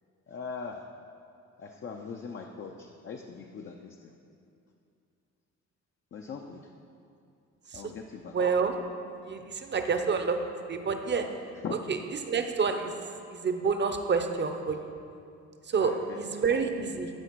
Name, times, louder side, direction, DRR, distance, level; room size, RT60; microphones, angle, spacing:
voice 1, 0.3-0.8 1.6-4.1 6.1-6.6 7.7-8.3 11.6-11.8 15.8-16.2, left 5 dB, 40° left, 2 dB, 0.6 m, -40 dB
voice 2, 8.3-8.8 9.2-10.4 10.7-11.3 11.9-12.0 12.3-12.9 13.3-14.9 15.7-17.1, right 5 dB, 35° right, 7 dB, 0.8 m, -28 dB
12.0 x 4.9 x 4.6 m, 2.5 s
cardioid pair, 90°, 30 cm